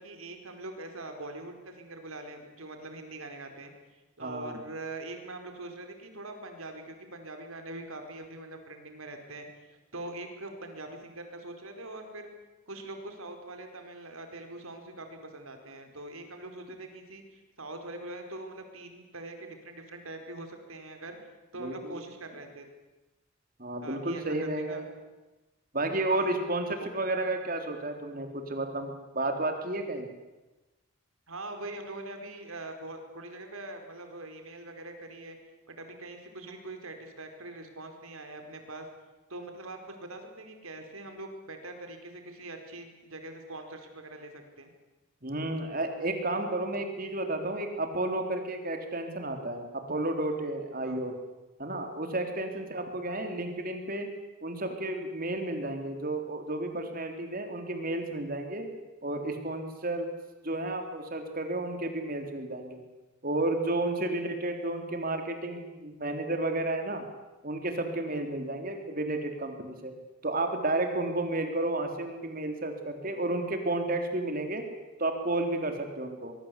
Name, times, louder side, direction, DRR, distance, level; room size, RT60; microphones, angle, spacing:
voice 1, 0.0-3.7 4.2-12.3 12.7-21.2 21.5-22.7 23.8-24.8 26.1-26.3 26.8-26.9 31.3-35.4 35.7-38.9 39.3-44.7 50.8-51.0 52.5-52.6 64.0-64.2, right 2 dB, 85° right, 5 dB, 4.7 m, -43 dB
voice 2, 4.2-4.6 21.6-22.0 23.6-24.9 25.7-30.1 45.2-51.1 51.6-54.1 54.4-58.7 59.0-60.1 60.4-62.8 63.2-67.0 67.4-69.9 70.2-74.6 75.0-76.3, right 2 dB, 45° right, 5 dB, 3.7 m, -32 dB
24.5 x 22.5 x 8.4 m, 1.1 s
head